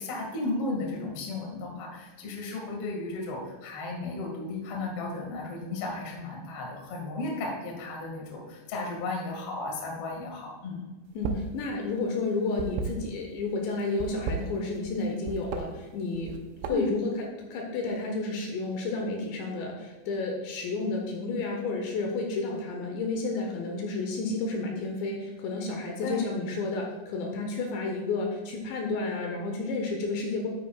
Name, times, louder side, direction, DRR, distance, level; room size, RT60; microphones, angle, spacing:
voice 1, 0.0-10.8 16.7-16.9 26.0-26.3, left 2 dB, 50° left, -1 dB, 2.0 m, -34 dB
sound 1, 11.1-11.5 11.8-13.4 13.9-15.0 15.2-15.6 16.1-17.0, right 6 dB, 80° right, 2.8 m, -34 dB
voice 2, 11.2-16.4 16.7-17.1 17.5-30.5, left 3 dB, 75° left, 1 dB, 3.0 m, -31 dB
12.5 x 9.0 x 2.4 m, 1.3 s
omnidirectional pair, 5.5 m